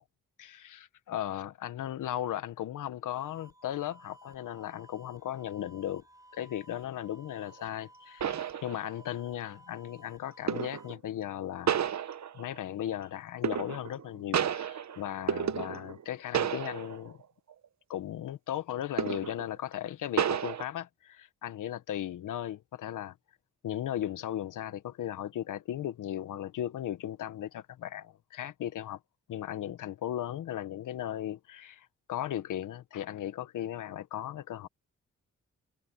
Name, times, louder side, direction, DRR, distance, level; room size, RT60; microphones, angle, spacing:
voice 1, 0.4-6.0 6.3-11.8 12.3-17.2 17.9-23.1 23.6-29.0 29.3-34.7, left 11 dB, 85° left, 1.3 m, -36 dB
sound 1, 3.1-11.0, right 1 dB, 10° right, 7.4 m, -57 dB
sound 2, 7.6-7.7 8.2-9.1 10.5-11.0 11.7-12.6 13.4-14.0 14.3-16.1 16.3-17.1 17.5-17.7 19.0-19.5 20.2-20.6, right 9 dB, 60° right, 1.1 m, -31 dB
supercardioid pair, 55°, 31 cm